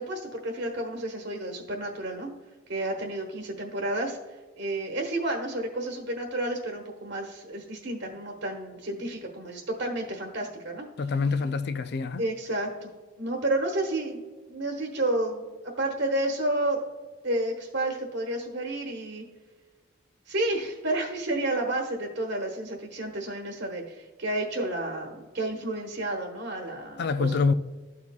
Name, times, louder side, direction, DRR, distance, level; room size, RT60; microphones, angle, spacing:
voice 1, 0.0-2.3 2.7-4.2 4.6-10.9 12.2-12.9 13.2-14.2 14.5-15.5 15.8-16.8 17.2-19.2 20.3-27.4, right 1 dB, 60° right, 1.2 m, -31 dB
voice 2, 11.0-12.2 27.0-27.5, left 4 dB, 50° left, 0.4 m, -26 dB
13.0 x 4.8 x 2.3 m
head